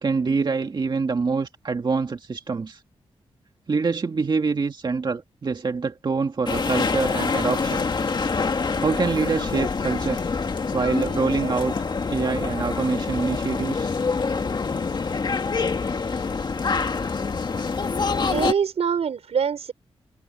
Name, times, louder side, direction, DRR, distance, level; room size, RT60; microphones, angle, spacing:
voice 1, 0.0-2.8 3.7-7.8 8.8-10.2 10.7-11.7 12.1-13.9, right 4 dB, 45° right, 2.0 m, -25 dB
sound 1, 6.5-18.5, left 4 dB, 45° left, 2.0 m, -26 dB
voice 2, 18.3-19.7, right 7 dB, 80° right, 5.1 m, -24 dB
wide cardioid pair, 115°, 11 cm